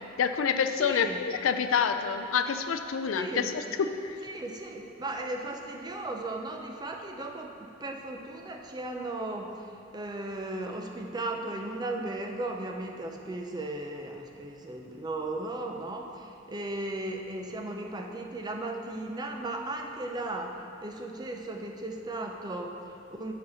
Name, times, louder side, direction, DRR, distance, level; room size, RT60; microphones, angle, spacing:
voice 1, 0.2-3.4 4.0-4.2, left 6 dB, 75° left, 8 dB, 0.4 m, -27 dB
voice 2, 0.8-1.2 3.1-3.6 4.2-23.3, right 2 dB, 20° right, 2 dB, 0.5 m, -36 dB
7.3 x 4.2 x 6.3 m, 2.5 s
head